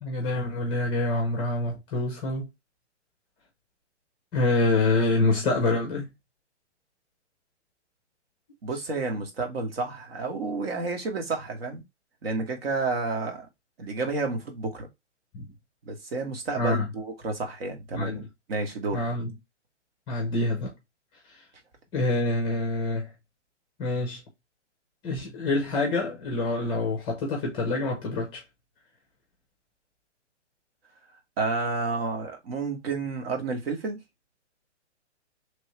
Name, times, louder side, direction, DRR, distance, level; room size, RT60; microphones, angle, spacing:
voice 1, 0.0-2.5 4.3-6.1 15.3-15.4 16.6-16.9 17.9-18.3 18.9-19.3 20.1-20.7 21.3-21.4 21.9-23.1 23.8-24.2 25.0-28.4, left 2 dB, 15° left, 0.6 m, -26 dB
voice 2, 8.6-11.8 12.2-13.5 13.8-14.9 15.8-18.2 18.5-19.0 31.4-34.0, right 3 dB, 55° right, 1.2 m, -30 dB
3.1 x 2.6 x 3.0 m
hypercardioid pair, 140°, 36 cm